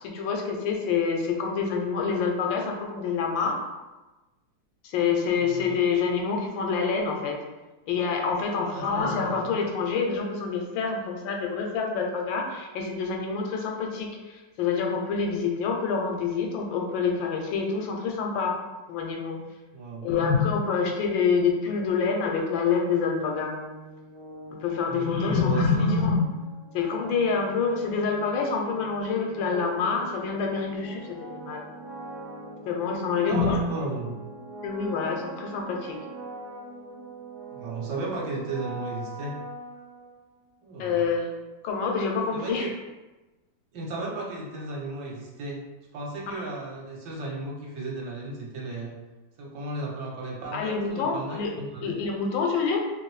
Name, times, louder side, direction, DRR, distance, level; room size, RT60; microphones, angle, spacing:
voice 1, 0.0-3.6 4.8-7.4 7.9-18.6 18.9-19.4 20.0-23.5 24.6-26.2 26.7-31.6 32.7-33.6 34.6-36.0 40.8-41.3 41.6-42.7 46.3-46.4 50.5-51.5 51.8-52.8, left 5 dB, 80° left, 1 dB, 1.3 m, -27 dB
voice 2, 5.4-5.8 8.6-9.3 19.7-20.1 24.9-25.8 33.1-34.2 37.5-39.4 40.6-41.0 42.3-42.7 43.7-45.6 45.9-49.0 49.4-52.0, right 2 dB, 70° right, -3 dB, 1.3 m, -35 dB
sound 1, 22.8-40.5, right 1 dB, 35° right, 0.4 m, -42 dB
3.2 x 2.6 x 3.1 m, 1.1 s
omnidirectional pair, 2.1 m